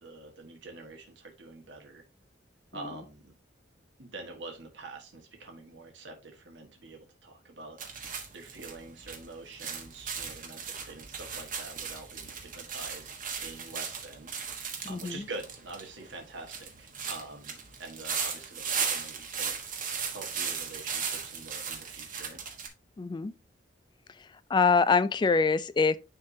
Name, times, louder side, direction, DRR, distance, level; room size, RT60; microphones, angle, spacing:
voice 1, 0.0-2.0 2.7-3.3 4.0-14.3 14.6-22.4, right 3 dB, 65° right, 1.5 m, -46 dB
sound 1, 7.8-22.7, right 6 dB, 45° right, 1.3 m, -37 dB
voice 2, 14.9-15.2 23.0-23.3 24.5-26.0, left 5 dB, 25° left, 0.3 m, -24 dB
10.0 x 3.5 x 2.7 m
head